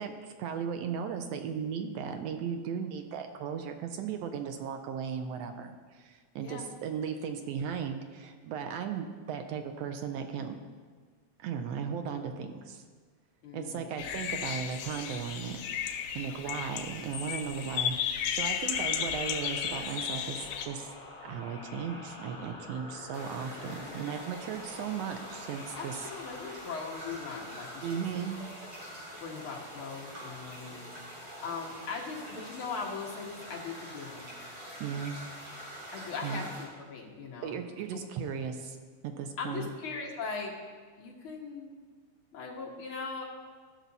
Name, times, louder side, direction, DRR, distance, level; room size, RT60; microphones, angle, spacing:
voice 1, 0.0-10.6 11.4-12.8 13.5-15.6 15.9-20.9 21.2-26.0 26.5-26.6 27.8-28.3 34.8-35.1 36.2-36.5 37.4-38.8 39.0-39.7, right 7 dB, 75° right, 6 dB, 1.5 m, -36 dB
voice 2, 6.4-6.7 13.4-13.9 14.3-14.4 16.3-16.6 23.6-24.0 25.7-28.7 29.2-30.9 31.4-34.3 35.9-37.6 37.9-38.0 39.4-40.5 41.0-41.7 42.3-43.2, left 4 dB, 50° left, -2 dB, 1.9 m, -40 dB
sound 1, 14.0-20.7, left 9 dB, 90° left, 2.1 m, -34 dB
sound 2, 18.4-29.7, left 2 dB, 25° left, 2.0 m, -48 dB
sound 3, 23.1-36.6, equal, 50° right, 3.9 m, -45 dB
15.5 x 6.1 x 4.0 m, 1.5 s
omnidirectional pair, 3.5 m